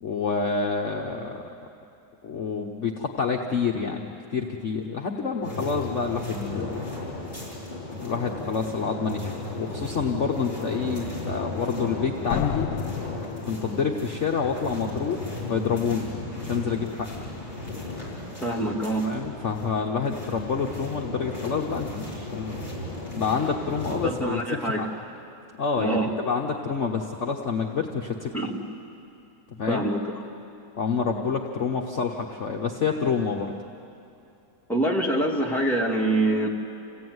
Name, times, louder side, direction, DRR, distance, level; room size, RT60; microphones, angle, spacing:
voice 1, 0.0-1.4 2.2-6.9 8.0-9.3 9.6-13.1 13.4-16.1 16.4-17.1 19.0-22.6 23.1-24.9 25.6-28.4 29.6-29.9 30.8-33.5, left 5 dB, 45° left, 1 dB, 1.3 m, -28 dB
sound 1, 5.4-24.1, left 2 dB, 30° left, 6.9 m, -35 dB
sound 2, 12.3-14.1, left 8 dB, 80° left, 1.4 m, -31 dB
voice 2, 18.4-19.1 24.0-24.8 25.8-26.1 28.3-28.6 29.7-30.0 34.7-36.5, right 1 dB, ahead, -3 dB, 2.3 m, -25 dB
28.5 x 16.5 x 9.5 m, 2.7 s
omnidirectional pair, 1.9 m